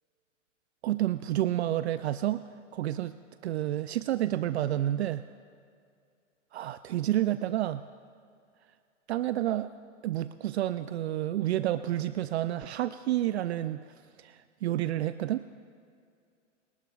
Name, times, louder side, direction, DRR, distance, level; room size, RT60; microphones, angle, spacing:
voice 1, 0.8-2.4 2.7-3.1 3.4-5.3 6.5-7.8 9.1-9.7 10.0-13.8 14.2-15.4, right 13 dB, 60° right, 13 dB, 0.5 m, -29 dB
25.5 x 18.5 x 2.4 m, 2.3 s
hypercardioid pair, 115°, 38 cm